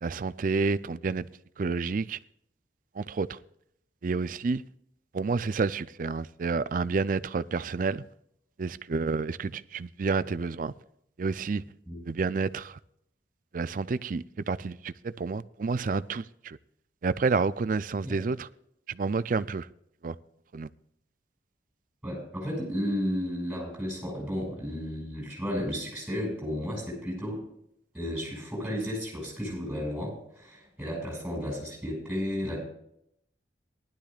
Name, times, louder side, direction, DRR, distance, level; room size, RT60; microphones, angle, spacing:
voice 1, 0.0-1.3 1.6-2.2 3.0-3.4 4.0-4.6 5.1-8.0 8.6-10.7 11.2-11.6 12.0-12.8 13.5-16.6 17.0-18.5 18.9-19.7 20.0-20.2 20.5-20.7, right 4 dB, 45° right, 0.4 m, -29 dB
voice 2, 22.0-27.4 27.9-32.6, equal, 5° right, 5.7 m, -33 dB
19.0 x 12.0 x 2.4 m
head